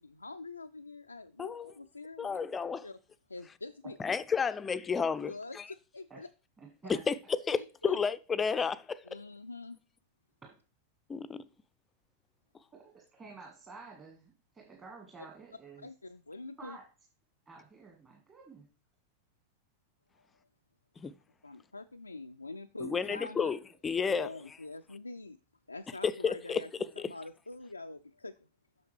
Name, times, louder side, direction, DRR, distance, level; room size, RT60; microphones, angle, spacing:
voice 1, 0.0-2.4 2.8-3.0 3.3-4.0 5.3-6.3 7.5-8.0 9.1-9.8 15.8-16.8 21.4-23.5 24.1-25.4 25.7-26.7 27.1-28.3, left 3 dB, 80° left, 0.3 m, -45 dB
voice 2, 1.4-1.7 2.2-2.9 4.0-5.7 6.9-9.2 11.1-11.4 21.0-21.1 22.8-24.3 26.0-26.6 27.0-27.1, left 6 dB, 15° left, 0.4 m, -32 dB
voice 3, 6.6-7.0 10.4-10.6 12.7-15.9 16.6-16.8 17.4-18.6, right 4 dB, 20° right, 1.6 m, -51 dB
8.0 x 6.2 x 3.2 m
figure-of-eight pair, 90°, 0 cm